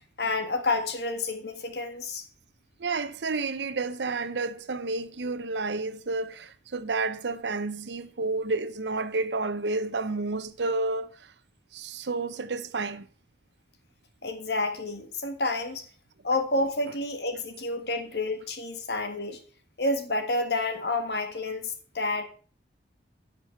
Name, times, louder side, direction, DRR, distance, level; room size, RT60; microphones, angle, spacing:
voice 1, 0.2-2.2 14.2-15.8 16.2-19.4 19.8-22.2, left 2 dB, 65° left, 1.7 m, -29 dB
voice 2, 2.8-11.3 11.7-13.1 16.3-16.4, right 3 dB, 80° right, 0.8 m, -30 dB
10.5 x 6.1 x 5.9 m
head